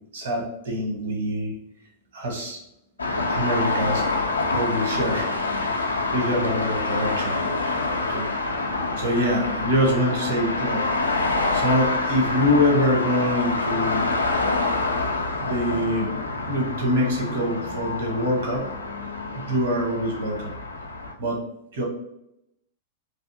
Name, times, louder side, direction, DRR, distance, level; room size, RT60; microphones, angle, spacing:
voice 1, 0.1-1.5 2.1-2.6 3.3-4.0 4.5-5.3 6.1-7.8 8.1-8.3 9.0-10.8 11.5-14.1 15.4-16.1 16.5-18.7 19.3-20.5 21.2-21.4 21.7-21.8, equal, 65° right, 0 dB, 1.1 m, -24 dB
sound 1, 3.0-21.1, left 3 dB, 85° left, 0.3 m, -26 dB
3.3 x 2.6 x 2.7 m, 0.81 s
figure-of-eight pair, 95°, 0 cm